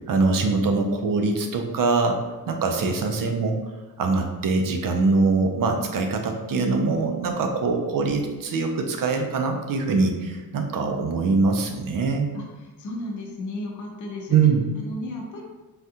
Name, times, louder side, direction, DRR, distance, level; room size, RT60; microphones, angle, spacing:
voice 1, 0.1-2.2 2.5-3.6 4.0-12.3 14.3-14.7, right 4 dB, 50° right, 4 dB, 0.5 m, -23 dB
voice 2, 12.8-14.4 14.8-15.4, left 1 dB, 45° left, -1 dB, 0.6 m, -33 dB
3.5 x 2.3 x 2.7 m, 1.2 s
cardioid pair, 115°, 42 cm